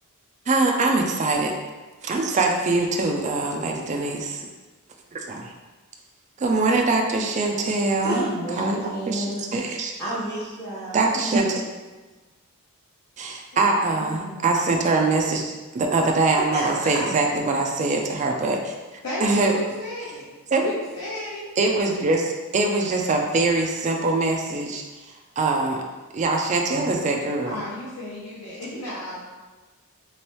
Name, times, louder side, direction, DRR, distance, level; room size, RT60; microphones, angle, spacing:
voice 1, 0.5-1.6 2.0-4.5 5.1-5.5 6.4-8.3 8.6-9.9 10.9-11.6 13.2-19.6 20.5-20.7 21.6-24.8 25.4-25.8 26.1-27.6, right 3 dB, 30° right, 1 dB, 0.3 m, -23 dB
voice 2, 7.6-9.4 10.0-11.7 16.5-17.0 17.4-17.8, right 1 dB, 10° left, -9 dB, 1.0 m, -31 dB
voice 3, 13.5-14.5 19.0-20.3 20.6-21.5 27.4-29.2, left 1 dB, 75° left, -8 dB, 0.7 m, -34 dB
3.1 x 3.0 x 2.9 m, 1.3 s
head